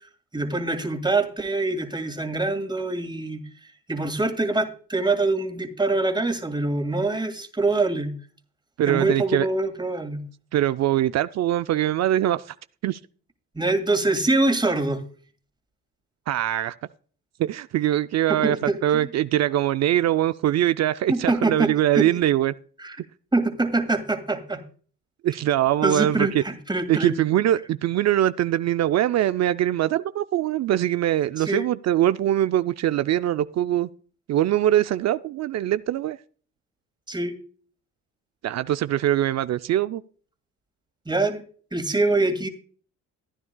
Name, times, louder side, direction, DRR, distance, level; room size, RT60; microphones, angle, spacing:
voice 1, 0.3-8.1 8.9-10.2 13.6-15.0 18.3-18.8 21.1-22.1 22.8-23.0 23.3-24.6 25.8-27.1 31.4-31.7 37.1-37.4 41.1-41.4 41.7-42.5, right 2 dB, 15° right, 2.1 m, -24 dB
voice 2, 8.8-9.5 10.5-12.5 12.8-13.0 16.3-16.8 17.4-22.5 25.2-26.4 26.9-33.9 34.3-36.2 38.4-40.0, right 12 dB, 60° right, 0.5 m, -22 dB
15.0 x 9.7 x 2.2 m
cardioid pair, 90°, 30 cm